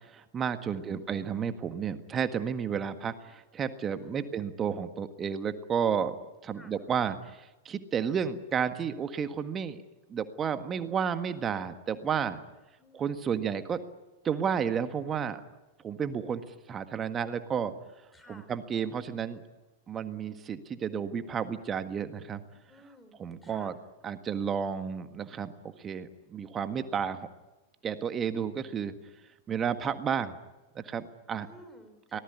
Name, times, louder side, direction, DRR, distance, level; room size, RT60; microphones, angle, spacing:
voice 1, 0.0-6.2 6.4-9.8 10.1-12.4 12.9-13.8 14.2-15.4 15.8-17.7 18.3-19.4 19.9-22.4 23.2-23.8 24.0-25.5 25.8-27.3 27.8-28.9 29.5-30.4 30.7-31.5 32.1-32.2, right 7 dB, 25° right, 10 dB, 1.7 m, -32 dB
voice 2, 0.7-1.2 3.9-4.4 6.5-6.7 12.8-13.2 18.1-18.5 22.7-23.7 31.4-32.2, equal, 10° left, 8 dB, 4.3 m, -54 dB
25.0 x 18.5 x 9.8 m, 1.1 s
figure-of-eight pair, 95°, 0 cm